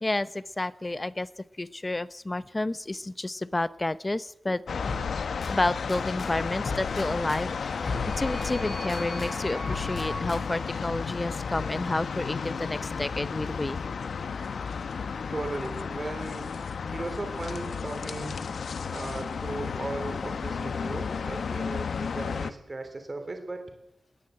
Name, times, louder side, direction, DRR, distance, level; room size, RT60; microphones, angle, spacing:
voice 1, 0.0-4.6 5.5-13.8, left 2 dB, 20° left, 16 dB, 0.8 m, -30 dB
sound 1, 4.7-22.5, left 5 dB, 80° left, 1.1 m, -33 dB
sound 2, 4.9-6.3 6.6-9.3 9.7-10.7, left 4 dB, 60° left, 4.4 m, -38 dB
sound 3, 7.2-11.6, equal, 15° right, 5.6 m, -42 dB
voice 2, 15.3-16.5 16.9-18.3 18.9-23.7, right 2 dB, 30° right, 6 dB, 3.1 m, -37 dB
20.0 x 18.5 x 7.9 m, 0.88 s
wide cardioid pair, 130°, 0 cm